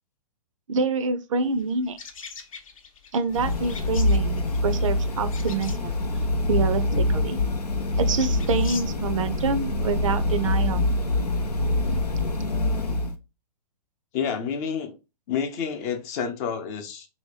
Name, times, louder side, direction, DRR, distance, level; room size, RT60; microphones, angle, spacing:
voice 1, 0.7-2.0 3.1-6.0 6.5-7.4 8.0-10.9, right 4 dB, 55° right, 0.5 m, -27 dB
sound 1, 1.5-8.8, left 5 dB, 60° left, 0.8 m, -44 dB
sound 2, 3.3-13.1, left 2 dB, 90° left, 0.6 m, -25 dB
voice 2, 14.1-14.9 15.3-17.1, left 7 dB, 25° left, 0.5 m, -29 dB
3.1 x 2.8 x 3.2 m
figure-of-eight pair, 120°, 20 cm